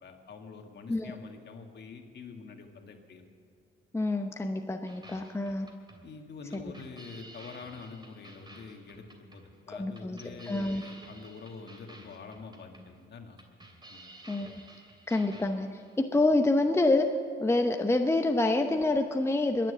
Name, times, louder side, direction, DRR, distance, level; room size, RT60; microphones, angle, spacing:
voice 1, 0.0-3.2 6.0-13.4 13.9-14.1, left 4 dB, 55° left, 4 dB, 1.8 m, -46 dB
voice 2, 3.9-5.7 6.5-6.6 9.7-10.8 14.3-14.6 15.1-19.7, left 2 dB, 10° left, 5 dB, 0.8 m, -27 dB
sound 1, 4.9-15.9, right 1 dB, 20° right, 2.9 m, -53 dB
21.0 x 7.7 x 7.9 m, 2.2 s
supercardioid pair, 75°, 21 cm